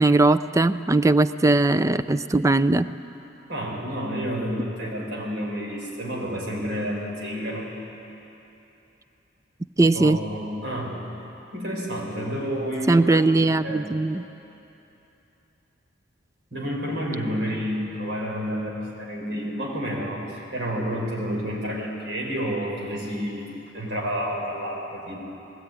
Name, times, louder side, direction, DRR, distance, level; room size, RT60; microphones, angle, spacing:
voice 1, 0.0-2.9 9.8-10.2 12.9-14.2, right 2 dB, 15° right, 13 dB, 0.4 m, -19 dB
voice 2, 3.5-7.7 9.9-11.0 11.5-13.8 16.5-25.1, equal, 65° right, -1 dB, 4.9 m, -30 dB
20.5 x 17.0 x 9.3 m, 3.0 s
head